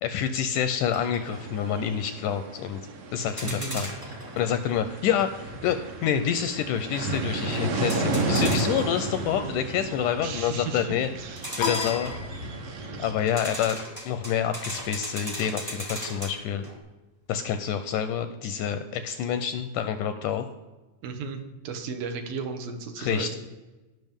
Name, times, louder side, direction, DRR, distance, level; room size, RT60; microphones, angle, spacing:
voice 1, 0.0-2.8 3.1-3.9 4.4-11.1 11.6-12.1 13.0-16.6 17.3-20.5 23.0-23.4, left 8 dB, 80° left, 9 dB, 1.9 m, -27 dB
sound 1, 0.9-1.5 3.3-4.5 7.7-9.3 11.4-12.4 13.2-16.8, equal, 15° right, 0.6 m, -38 dB
sound 2, 1.2-13.1, right 2 dB, 60° right, 2.2 m, -33 dB
voice 2, 3.4-3.8 10.2-10.9 11.2-11.4 21.0-23.4, right 5 dB, 75° right, 6 dB, 2.7 m, -34 dB
sound 3, 11.6-13.0, left 6 dB, 65° left, 1.0 m, -32 dB
17.5 x 6.0 x 3.6 m, 1.1 s
omnidirectional pair, 4.1 m